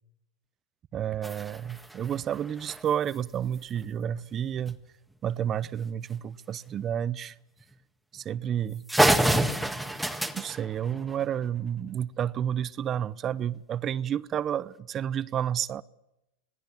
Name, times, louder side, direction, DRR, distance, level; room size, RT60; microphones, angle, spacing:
voice 1, 0.9-4.8 5.2-7.4 8.1-8.8 10.0-15.8, right 9 dB, 35° right, 0.8 m, -30 dB
sound 1, 1.2-3.2 4.7-4.8 5.1-5.2 5.6-5.8 6.7-6.9 7.6-7.7 8.2-8.3 8.6-8.7 8.9-11.6, right 1 dB, ahead, 1.8 m, -28 dB
26.5 x 19.0 x 7.3 m
hypercardioid pair, 105°, 0 cm